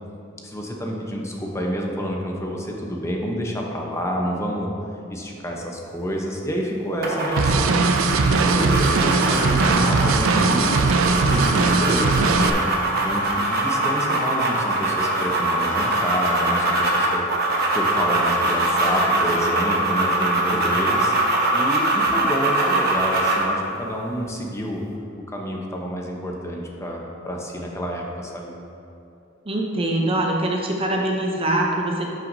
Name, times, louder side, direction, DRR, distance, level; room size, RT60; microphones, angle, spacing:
voice 1, 0.4-4.7 5.1-8.1 8.4-10.8 11.3-12.7 13.0-17.2 17.7-21.1 21.5-24.8 25.3-28.5, equal, 15° left, -1 dB, 0.8 m, -28 dB
sound 1, 7.0-23.5, right 2 dB, 50° right, 1.0 m, -22 dB
sound 2, 7.4-12.5, right 4 dB, 85° right, 0.4 m, -20 dB
sound 3, 17.3-22.6, left 2 dB, 75° left, 1.2 m, -40 dB
voice 2, 29.5-32.1, right 1 dB, 30° right, 0 dB, 0.6 m, -23 dB
11.5 x 5.8 x 2.7 m, 2.7 s
head